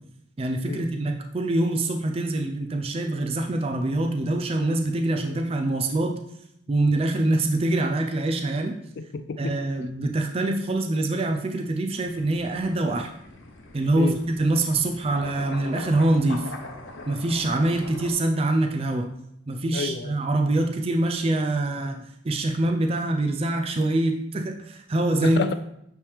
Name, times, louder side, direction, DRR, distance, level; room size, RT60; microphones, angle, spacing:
voice 1, 0.4-6.1 6.7-8.8 9.4-13.1 13.7-16.5 17.1-19.1 19.5-25.4, right 2 dB, 30° right, 3 dB, 0.4 m, -24 dB
voice 2, 9.0-9.6 14.0-14.2 19.7-20.1 25.2-25.5, left 4 dB, 60° left, 11 dB, 0.4 m, -29 dB
sound 1, 11.9-18.1, left 2 dB, 90° left, 0.8 m, -42 dB
8.4 x 3.2 x 3.4 m, 0.77 s
head